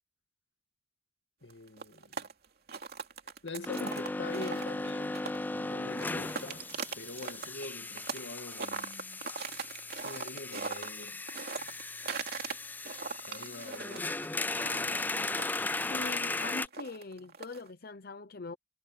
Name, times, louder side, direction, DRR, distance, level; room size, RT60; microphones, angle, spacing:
voice 1, 1.4-2.3 3.4-5.3 5.5-6.7 7.0-9.2 9.9-11.3 13.3-14.2 14.5-15.5, left 2 dB, 75° left, 2.2 m, -44 dB
sound 1, 1.5-5.6 5.9-8.3 8.5-12.6 12.8-17.7, right 5 dB, 60° right, 2.7 m, -40 dB
sound 2, 3.7-16.7, left 2 dB, 10° left, 0.3 m, -37 dB
voice 2, 15.9-18.6, left 3 dB, 55° left, 0.9 m, -42 dB
head